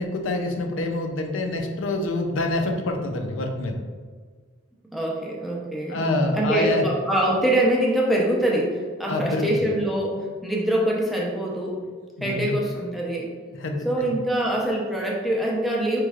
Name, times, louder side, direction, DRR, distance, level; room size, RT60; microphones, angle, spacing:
voice 1, 0.0-3.8 5.9-6.9 9.1-9.5 12.2-12.6 13.5-14.1, left 2 dB, 80° left, 4 dB, 0.5 m, -26 dB
voice 2, 4.9-6.0 6.3-11.8 12.2-13.3 13.8-16.0, right 1 dB, ahead, -3 dB, 0.6 m, -24 dB
5.2 x 3.1 x 2.4 m, 1.5 s
head